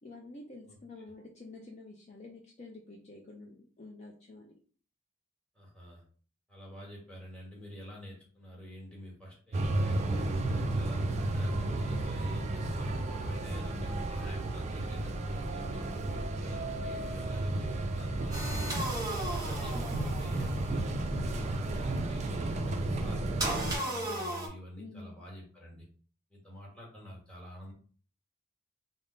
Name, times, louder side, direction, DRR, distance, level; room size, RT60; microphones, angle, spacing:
voice 1, 0.0-4.5 18.5-19.0 24.8-25.1, left 2 dB, 35° left, -1 dB, 0.5 m, -49 dB
voice 2, 0.7-1.0 5.5-6.0 6.5-18.7 19.2-25.8 26.3-27.7, left 1 dB, 5° left, -4 dB, 1.3 m, -47 dB
sound 1, 9.5-23.8, right 2 dB, 35° right, 0.4 m, -33 dB
sound 2, 18.3-20.8 23.4-24.5, right 1 dB, 20° right, 0.9 m, -35 dB
3.5 x 2.1 x 3.8 m, 0.43 s
head